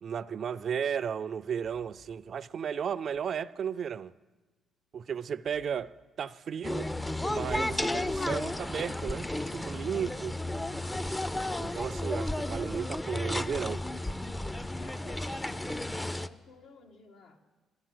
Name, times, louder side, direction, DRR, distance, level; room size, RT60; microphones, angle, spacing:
voice 1, 0.0-4.1 4.9-6.9 7.2-10.4 11.6-13.8, right 7 dB, 55° right, 0.3 m, -34 dB
random cable noise, 1.6-2.1 3.1-3.2 5.4-5.9 6.3-6.6 7.1-7.5 7.8-8.5 9.0-9.4, left 4 dB, 60° left, 5.7 m, -58 dB
sound 1, 6.6-16.3, left 1 dB, 15° left, 0.4 m, -33 dB
voice 2, 14.8-17.4, left 4 dB, 85° left, 1.4 m, -53 dB
12.0 x 9.3 x 7.6 m
cardioid pair, 90°, 0 cm